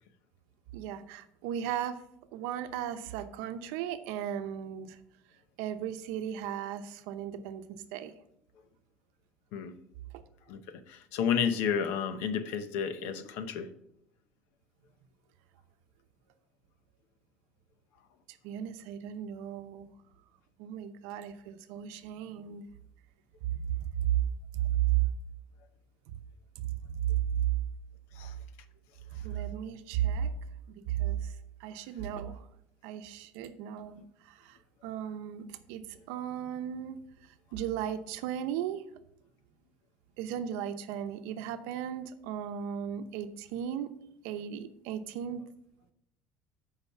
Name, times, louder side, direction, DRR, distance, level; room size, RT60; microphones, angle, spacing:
voice 1, 0.7-2.0 2.3-5.0 5.6-8.1 10.1-10.2 18.4-19.9 20.6-22.6 23.5-24.2 24.5-25.1 26.1-26.2 26.6-27.5 29.1-30.3 30.9-32.4 32.8-38.8 40.2-43.9 44.2-45.4, right 11 dB, 80° right, 9 dB, 0.8 m, -35 dB
voice 2, 10.9-13.7 28.2-28.3, left 7 dB, 70° left, 11 dB, 0.8 m, -31 dB
8.2 x 5.0 x 5.5 m, 0.78 s
cardioid pair, 150°, 4 cm